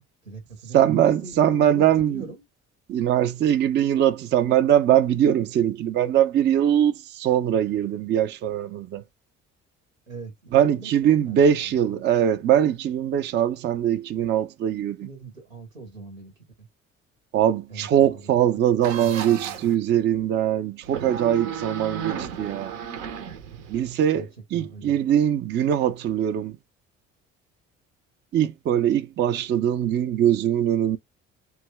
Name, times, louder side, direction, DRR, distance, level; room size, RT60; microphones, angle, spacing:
voice 1, 0.0-2.4 10.1-10.3 10.6-12.0 15.0-16.3 17.7-18.4 18.7-19.7 24.1-24.3 24.5-25.0, right 4 dB, 85° right, 1.0 m, -41 dB
voice 2, 0.7-2.2 2.9-9.0 10.5-15.1 17.3-22.7 23.7-26.6 28.3-31.0, right 10 dB, 30° right, 0.4 m, -22 dB
sound 1, 18.8-19.7 20.8-23.9, right 7 dB, 65° right, 0.7 m, -34 dB
2.7 x 2.3 x 3.2 m
figure-of-eight pair, 50°, 39 cm